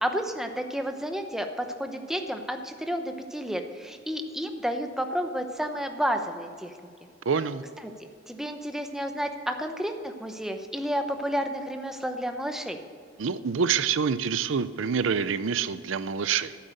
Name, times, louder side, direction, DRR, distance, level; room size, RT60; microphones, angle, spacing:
voice 1, 0.0-6.7 7.8-12.8, equal, ahead, 5 dB, 0.8 m, -31 dB
voice 2, 7.3-7.6 13.2-16.5, right 6 dB, 90° right, 14 dB, 0.5 m, -26 dB
11.5 x 9.4 x 6.5 m, 2.1 s
head